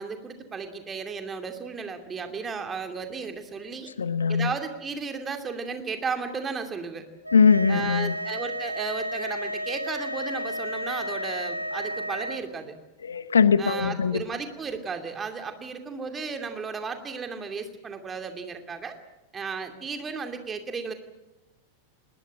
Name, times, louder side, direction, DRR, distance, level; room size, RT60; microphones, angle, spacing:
voice 1, 0.0-3.9 4.3-7.0 7.7-12.7 13.6-19.0 19.3-20.9, right 5 dB, 20° right, 6 dB, 2.6 m, -34 dB
voice 2, 4.0-4.5 7.3-8.1 13.0-14.2, left 6 dB, 70° left, 16 dB, 0.8 m, -21 dB
sound 1, 7.2-12.4, equal, 85° right, 1.0 m, -32 dB
20.5 x 19.0 x 8.8 m, 1.0 s
figure-of-eight pair, 90°, 0 cm